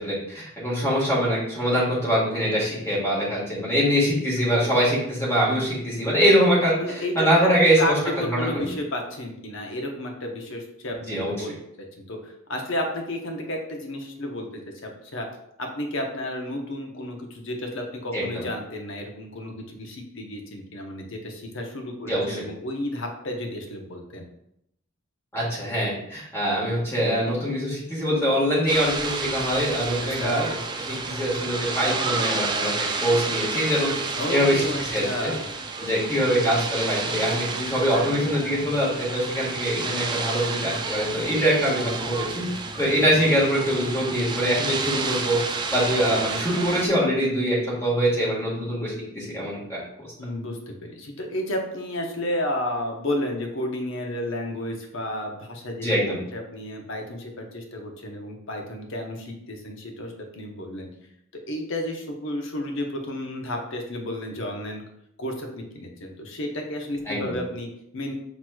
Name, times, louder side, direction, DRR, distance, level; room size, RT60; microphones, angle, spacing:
voice 1, 0.0-8.0 8.3-8.7 10.9-11.3 18.1-18.4 22.1-22.4 25.3-30.6 30.9-33.9 34.3-35.3 35.8-42.4 42.8-45.4 45.7-49.8 55.8-56.2 67.1-67.3, equal, 15° left, -6 dB, 1.4 m, -23 dB
voice 2, 6.8-11.5 12.1-15.3 15.6-24.3 30.0-30.5 34.2-35.5 50.2-55.9 56.3-60.9 61.3-64.8 65.2-68.1, left 1 dB, 65° left, 2 dB, 0.8 m, -32 dB
sound 1, 28.7-46.9, right 4 dB, 20° right, 0.3 m, -30 dB
6.0 x 3.0 x 2.2 m, 0.78 s
head